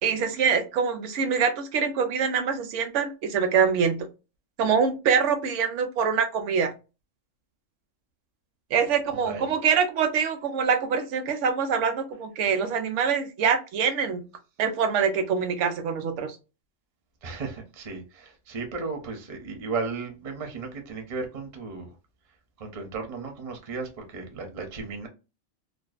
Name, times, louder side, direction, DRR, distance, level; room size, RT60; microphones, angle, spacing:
voice 1, 0.0-4.0 4.6-6.7 8.7-14.2 14.6-16.4, right 6 dB, 70° right, 0.9 m, -24 dB
voice 2, 9.1-9.5 17.2-21.9 22.6-25.1, right 4 dB, 45° right, 0.5 m, -35 dB
2.5 x 2.2 x 2.3 m
omnidirectional pair, 1.3 m